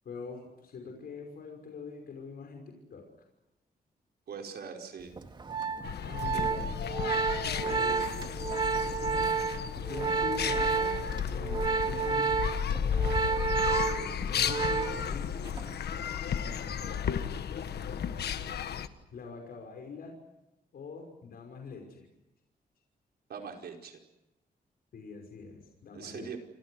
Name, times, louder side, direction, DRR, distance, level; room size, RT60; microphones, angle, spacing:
voice 1, 0.0-3.1 6.0-6.7 7.3-8.4 9.0-9.2 9.9-10.9 11.3-12.4 13.7-15.5 16.4-17.3 19.1-20.1 20.7-22.1 24.9-26.3, left 5 dB, 65° left, 3 dB, 5.8 m, -44 dB
voice 2, 4.3-5.1 23.3-24.0 25.9-26.4, right 6 dB, 75° right, 2 dB, 5.0 m, -41 dB
Organ, 5.2-15.2 15.5-15.8, right 5 dB, 30° right, 2.1 m, -30 dB
sound 1, 5.8-18.9, left 8 dB, 85° left, 1.5 m, -33 dB
29.5 x 26.0 x 6.4 m, 0.93 s
wide cardioid pair, 170°, 17 cm